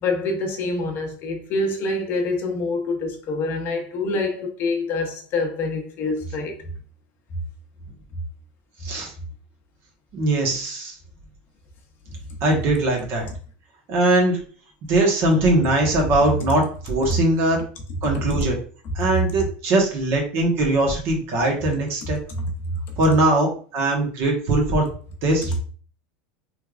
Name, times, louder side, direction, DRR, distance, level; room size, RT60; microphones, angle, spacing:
voice 1, 0.0-6.6 17.1-17.2 22.4-22.5, left 2 dB, 45° left, 0.8 m, -26 dB
voice 2, 10.1-10.9 12.4-13.3 13.9-14.4 14.9-17.6 18.0-18.6 18.9-22.2 23.0-24.9 25.2-25.6, right 2 dB, 50° right, 1.3 m, -21 dB
3.3 x 3.3 x 2.4 m
supercardioid pair, 120°, 5 cm